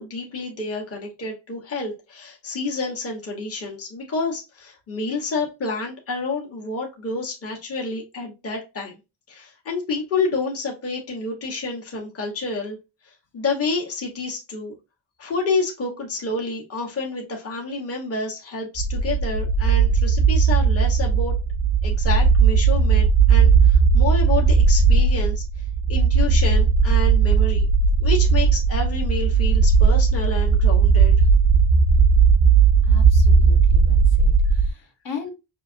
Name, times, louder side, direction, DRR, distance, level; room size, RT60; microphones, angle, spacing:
voice 1, 0.0-9.0 9.3-12.8 13.0-14.7 15.2-21.3 21.8-25.4 25.9-27.7 28.0-31.1, left 3 dB, 30° left, -1 dB, 1.0 m, -29 dB
sound 1, 18.8-34.7, right 5 dB, 30° right, 0.4 m, -17 dB
voice 2, 32.8-35.3, left 6 dB, 65° left, 2 dB, 1.4 m, -38 dB
5.5 x 2.8 x 2.5 m, 0.26 s
cardioid pair, 145°, 47 cm